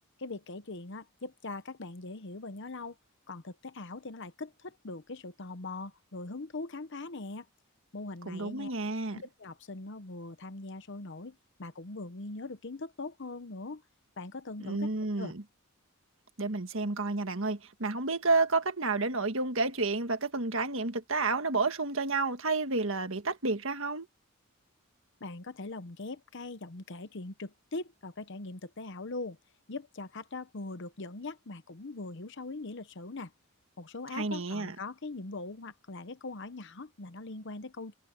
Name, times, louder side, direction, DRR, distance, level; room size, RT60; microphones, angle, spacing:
voice 1, 0.2-3.0 3.3-7.5 7.9-8.7 9.1-13.8 14.2-14.9 15.2-15.3 25.2-29.4 29.7-33.3 33.8-37.9, left 3 dB, 55° left, 0.9 m, -41 dB
voice 2, 8.3-9.2 14.6-15.4 16.4-24.1 34.1-34.8, right 3 dB, 60° right, 1.8 m, -30 dB
head